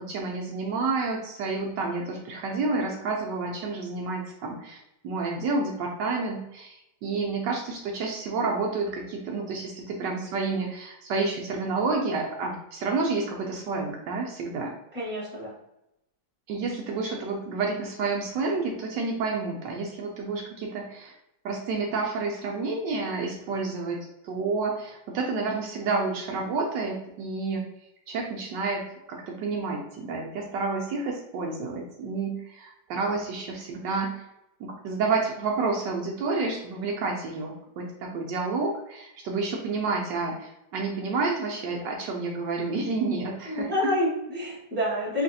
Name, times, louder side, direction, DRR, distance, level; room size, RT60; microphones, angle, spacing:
voice 1, 0.0-4.8 5.0-14.7 16.5-21.1 21.4-24.0 24.2-27.6 28.1-34.3 34.6-43.9, right 3 dB, 75° right, 0 dB, 1.1 m, -29 dB
voice 2, 14.9-15.5 43.5-45.2, left 1 dB, 5° right, -6 dB, 0.9 m, -28 dB
3.3 x 3.1 x 2.6 m, 0.86 s
omnidirectional pair, 2.1 m